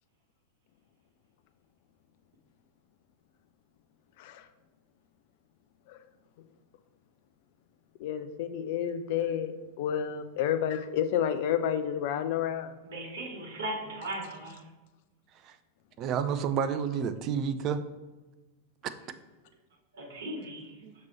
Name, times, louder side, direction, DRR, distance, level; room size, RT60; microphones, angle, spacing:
voice 1, 8.0-9.5 9.8-12.7, left 9 dB, 50° left, 9 dB, 0.5 m, -30 dB
voice 2, 12.8-14.6 19.9-20.7, right 1 dB, 60° right, 0 dB, 1.3 m, -37 dB
voice 3, 16.0-17.8 20.8-20.9, right 7 dB, 35° right, 12 dB, 0.4 m, -30 dB
6.0 x 4.2 x 4.3 m, 1.2 s
figure-of-eight pair, 90°, 0 cm